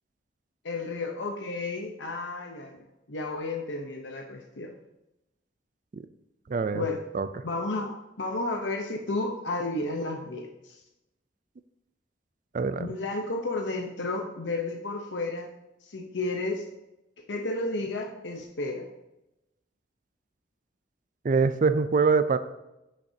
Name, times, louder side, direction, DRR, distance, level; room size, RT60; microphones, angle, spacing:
voice 1, 0.6-2.8 3.1-4.7 6.7-7.0 7.4-10.8 12.8-15.5 15.8-16.6 17.3-18.8, left 2 dB, 80° left, 2 dB, 0.8 m, -32 dB
voice 2, 6.5-6.8 7.1-7.3 12.5-12.9 21.2-22.4, right 4 dB, 45° right, 12 dB, 0.4 m, -24 dB
14.5 x 6.6 x 2.8 m, 0.94 s
head